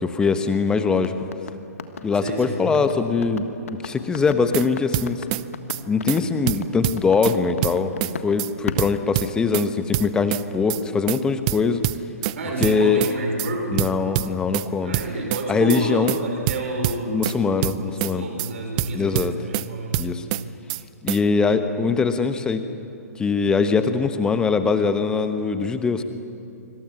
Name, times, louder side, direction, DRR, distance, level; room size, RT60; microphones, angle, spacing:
voice 1, 0.0-1.1 2.0-5.2 5.9-11.9 12.6-13.0 13.7-15.0 15.5-16.1 17.1-18.2 18.9-19.4 20.0-20.2 21.0-22.6 23.2-26.0, left 5 dB, 10° left, 10 dB, 1.1 m, -22 dB
sound 1, 1.0-8.3 8.7-9.7, left 5 dB, 55° left, 1.5 m, -35 dB
voice 2, 2.2-2.7 12.4-13.9 14.8-20.1, right 2 dB, 50° right, 2 dB, 5.4 m, -29 dB
sound 2, 4.3-4.7 4.9-5.4 5.7-5.8 6.1-6.2 6.5-7.4 7.6-8.1 8.4-8.5 8.8-9.7 9.9-10.4 10.7-10.8 11.1-11.2 11.5-12.3 12.6-13.1 13.4-13.5 13.8-14.7 14.9-15.4 15.7-15.8 16.1-16.2 16.5-17.3 17.6-18.1 18.4-18.5 18.8-19.7 19.9-20.4 20.7-20.8 21.1-21.2, right 19 dB, 25° right, 0.5 m, -25 dB
26.0 x 25.5 x 6.2 m, 2.6 s
figure-of-eight pair, 125°, 9 cm